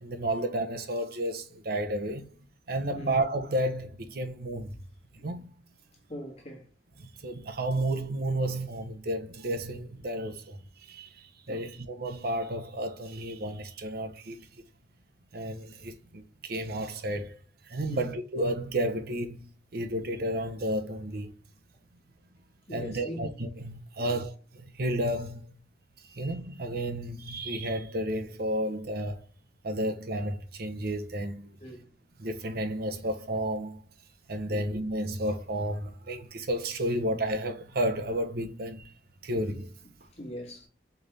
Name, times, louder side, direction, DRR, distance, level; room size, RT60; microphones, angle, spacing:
voice 1, 0.0-4.8 5.1-5.5 7.0-14.5 15.3-17.4 17.6-21.3 22.7-25.5 26.1-29.2 29.6-31.5 32.2-33.8 34.3-38.9 39.2-39.7, right 1 dB, 60° right, 0.7 m, -32 dB
voice 2, 6.1-6.7 11.5-11.7 17.9-18.1 22.7-23.3 24.0-24.2 31.6-31.9 34.5-34.7 39.3-39.4 40.1-40.7, equal, 35° left, 1.6 m, -41 dB
4.6 x 3.2 x 3.2 m
head